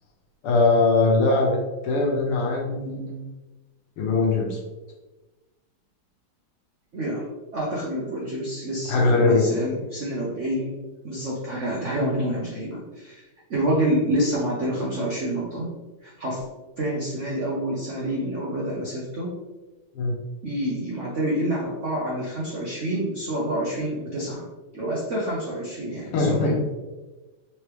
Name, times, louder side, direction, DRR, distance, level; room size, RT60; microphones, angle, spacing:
voice 1, 0.4-1.6 1.8-3.2 4.0-4.6 8.9-9.5 20.0-20.2 26.1-26.5, left 3 dB, 90° left, -1 dB, 1.9 m, -21 dB
voice 2, 6.9-7.3 7.5-10.8 11.0-13.2 13.5-15.7 16.0-16.4 16.8-19.3 20.4-24.4 24.7-26.7, right 1 dB, 70° right, -5 dB, 0.7 m, -27 dB
4.5 x 3.3 x 3.0 m, 1.2 s
omnidirectional pair, 2.4 m